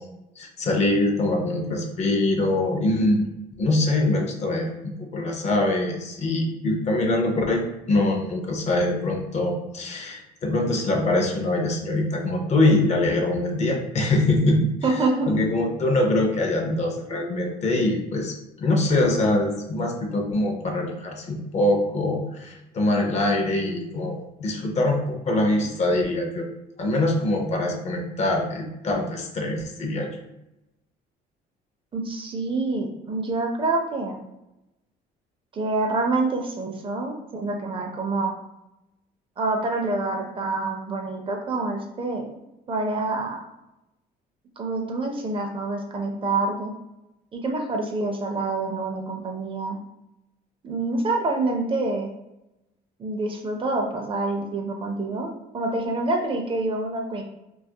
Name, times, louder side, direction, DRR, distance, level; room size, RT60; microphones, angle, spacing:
voice 1, 0.4-3.2 3.6-14.7 15.3-26.5 26.8-30.1, left 2 dB, 40° left, 2 dB, 0.5 m, -23 dB
voice 2, 14.8-15.3 31.9-34.2 35.5-38.3 39.4-42.3 42.7-43.4 44.6-46.7 47.3-49.8 50.6-52.1 53.0-57.2, right 3 dB, 30° right, 2 dB, 0.4 m, -26 dB
2.3 x 2.0 x 2.7 m, 0.90 s
cardioid pair, 110°, 17 cm